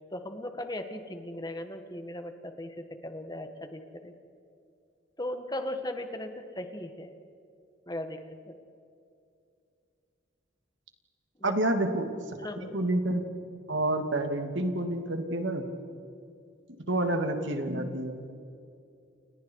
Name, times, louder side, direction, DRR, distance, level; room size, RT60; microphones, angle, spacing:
voice 1, 0.1-4.1 5.2-7.1 7.9-8.2 8.5-8.6 11.4-11.5 12.4-12.8, left 1 dB, 20° left, 7 dB, 1.7 m, -37 dB
voice 2, 11.4-12.1 12.6-13.2 13.7-15.7 16.8-18.2, right 1 dB, 75° right, 5 dB, 2.8 m, -28 dB
30.0 x 29.5 x 4.8 m, 2.5 s
head